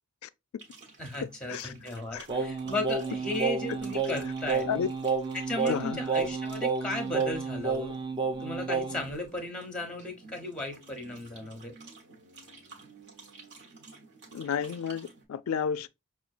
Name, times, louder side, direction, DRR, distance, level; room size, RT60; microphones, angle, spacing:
sound 1, 0.6-15.3, right 3 dB, 60° right, 1.2 m, -53 dB
voice 1, 1.0-4.7 5.5-7.9 8.4-11.7, left 1 dB, 5° left, 0.8 m, -35 dB
Singing, 2.3-9.1, right 4 dB, 25° right, 0.5 m, -30 dB
voice 2, 5.7-6.0 14.3-15.9, left 7 dB, 85° left, 0.3 m, -31 dB
5.7 x 2.3 x 2.4 m
head